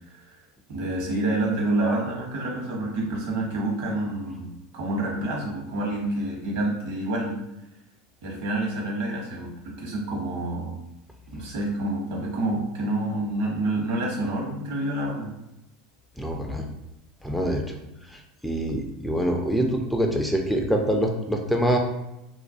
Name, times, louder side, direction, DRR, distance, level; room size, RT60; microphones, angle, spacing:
voice 1, 0.7-7.3 8.2-10.8 11.3-15.3, right 1 dB, 70° right, -2 dB, 0.9 m, -28 dB
voice 2, 16.2-16.7 17.2-17.6 18.1-21.8, equal, ahead, 1 dB, 0.3 m, -25 dB
2.3 x 2.2 x 2.6 m, 0.91 s
hypercardioid pair, 85°, 0 cm